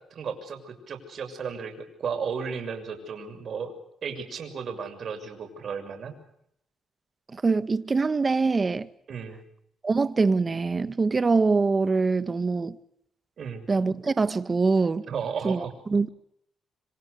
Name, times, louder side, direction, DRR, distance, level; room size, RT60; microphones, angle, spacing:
voice 1, 0.1-3.7 4.0-6.1 9.1-9.4 13.4-13.7 15.1-15.7, right 6 dB, 55° right, 6.8 m, -34 dB
voice 2, 7.3-8.9 9.8-12.8 13.7-15.1 15.4-15.6 15.9-16.1, right 4 dB, 30° right, 1.6 m, -24 dB
26.5 x 25.5 x 6.7 m
cardioid pair, 90°, 0 cm